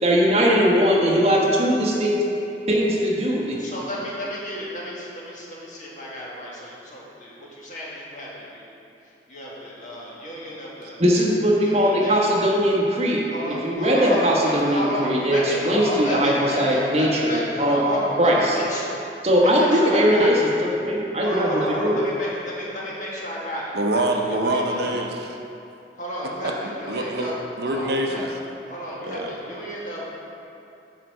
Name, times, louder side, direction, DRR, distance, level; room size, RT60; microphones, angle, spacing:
voice 1, 0.0-2.2 2.7-3.6 11.0-17.8 18.2-18.6 19.2-21.9, equal, 35° right, -3 dB, 1.2 m, -20 dB
voice 2, 3.6-8.6 9.3-11.0 11.6-12.4 13.3-19.0 19.3-20.3 21.2-24.8 26.0-28.2 28.7-30.1, equal, 45° left, -5 dB, 1.8 m, -32 dB
voice 3, 23.7-25.4 26.4-28.3 29.0-29.3, right 1 dB, 65° right, 2 dB, 0.7 m, -26 dB
8.8 x 4.5 x 6.5 m, 2.7 s
head